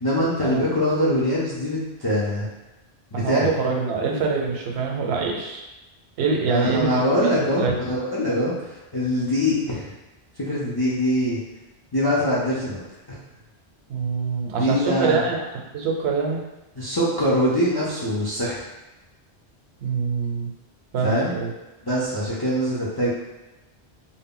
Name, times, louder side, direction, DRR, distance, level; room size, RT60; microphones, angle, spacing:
voice 1, 0.0-2.5 3.1-3.5 6.5-8.5 8.9-9.9 10.4-11.4 11.9-12.8 14.6-15.3 16.8-18.6 21.0-21.3 21.8-23.1, equal, 40° left, -8 dB, 0.3 m, -23 dB
voice 2, 3.1-5.7 6.2-6.9 7.2-7.3 7.6-7.7 13.9-15.4 15.7-16.4 19.8-20.5 20.9-21.5, right 5 dB, 80° right, 0 dB, 0.8 m, -24 dB
2.1 x 2.0 x 3.6 m, 1.0 s
omnidirectional pair, 1.1 m